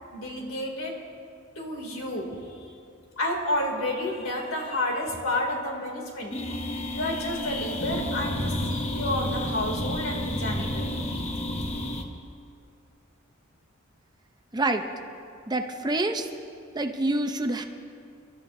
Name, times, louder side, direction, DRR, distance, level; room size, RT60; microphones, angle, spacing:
voice 1, 0.1-1.0 1.6-2.4 3.2-6.3 6.9-10.9, left 1 dB, 75° left, 0 dB, 2.6 m, -30 dB
sound 1, 6.3-12.0, left 1 dB, 30° left, 1.1 m, -30 dB
voice 2, 14.5-14.9 15.5-16.3 16.7-17.6, right 2 dB, 20° right, 5 dB, 0.6 m, -26 dB
29.0 x 12.5 x 2.7 m, 2.5 s
head